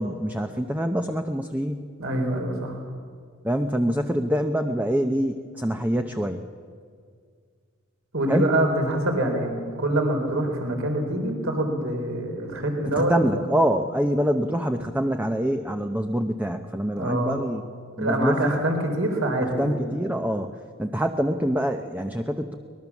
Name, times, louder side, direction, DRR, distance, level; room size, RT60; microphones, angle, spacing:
voice 1, 0.0-1.8 3.4-6.4 8.3-8.5 12.9-17.6 18.0-18.6 19.6-20.5 20.8-22.5, equal, 5° right, 5 dB, 0.8 m, -25 dB
voice 2, 2.0-2.8 8.1-9.5 9.8-13.4 17.0-17.4 18.0-20.0, right 1 dB, 65° right, 3 dB, 4.0 m, -25 dB
24.0 x 20.0 x 7.2 m, 2.1 s
head